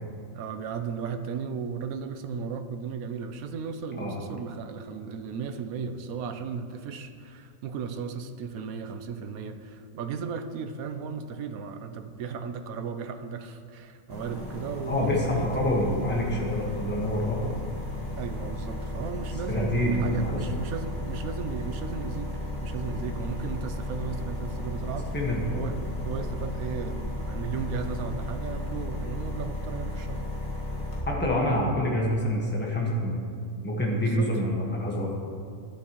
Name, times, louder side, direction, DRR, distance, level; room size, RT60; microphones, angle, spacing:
voice 1, 0.3-15.5 18.2-22.3 22.6-25.1 25.5-25.8 26.0-30.3 33.9-34.3, right 6 dB, 85° right, 8 dB, 1.1 m, -35 dB
sound 1, 14.1-31.0, left 1 dB, 30° left, 1.6 m, -34 dB
voice 2, 14.8-17.5 19.5-20.4 25.1-25.6 31.1-33.2 33.6-35.1, equal, 10° left, -3 dB, 1.3 m, -27 dB
12.0 x 10.5 x 3.0 m, 2.3 s
omnidirectional pair, 1.5 m